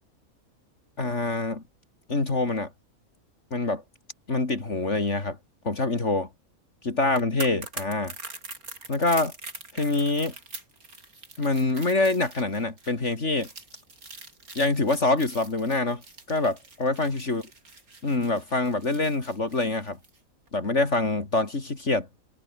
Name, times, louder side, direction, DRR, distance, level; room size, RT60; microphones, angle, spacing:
voice 1, 1.0-1.6 2.1-2.7 3.5-3.8 4.3-5.4 5.6-6.3 6.8-8.1 8.9-9.3 9.7-10.3 11.4-13.5 14.5-16.0 16.3-17.4 18.0-20.0 20.5-22.1, left 2 dB, 55° left, 3.5 m, -25 dB
sound 1, 7.0-20.2 20.5-20.6, right 3 dB, 85° right, 5.0 m, -43 dB
omnidirectional pair, 1.5 m